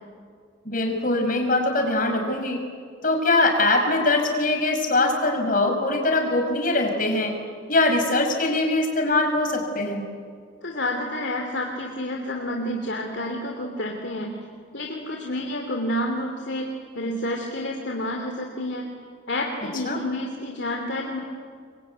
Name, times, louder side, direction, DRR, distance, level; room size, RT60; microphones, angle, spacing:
voice 1, 0.7-2.6 3.0-7.3 7.7-10.1 19.8-20.0, left 2 dB, 40° left, 4 dB, 5.4 m, -22 dB
voice 2, 10.6-14.3 14.7-18.9 19.3-21.2, left 1 dB, 55° left, 2 dB, 2.7 m, -29 dB
27.0 x 23.0 x 9.3 m, 2.1 s
head